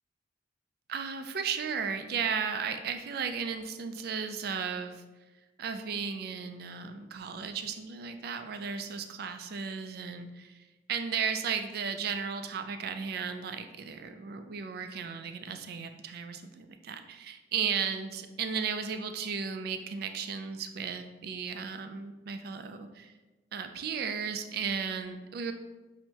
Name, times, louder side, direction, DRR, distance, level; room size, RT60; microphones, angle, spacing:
voice 1, 0.9-5.0 5.6-23.1 23.5-25.5, right 6 dB, 55° right, 8 dB, 0.3 m, -35 dB
6.2 x 2.1 x 2.8 m, 1.2 s
head